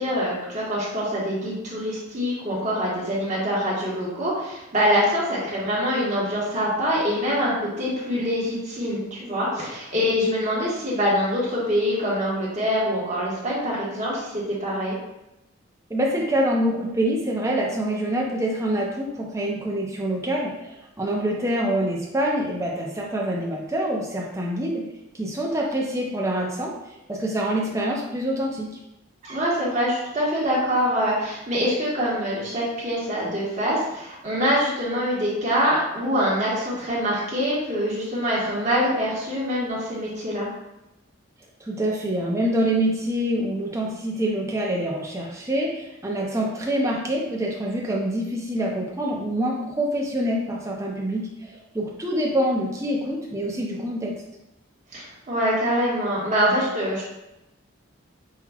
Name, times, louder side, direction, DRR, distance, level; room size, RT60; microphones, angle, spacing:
voice 1, 0.0-15.0 29.2-40.5 54.9-57.0, equal, 35° right, -7 dB, 1.2 m, -24 dB
voice 2, 15.9-24.8 25.1-28.7 41.6-54.1, right 1 dB, 15° right, -2 dB, 0.5 m, -26 dB
5.6 x 2.3 x 2.3 m, 0.92 s
head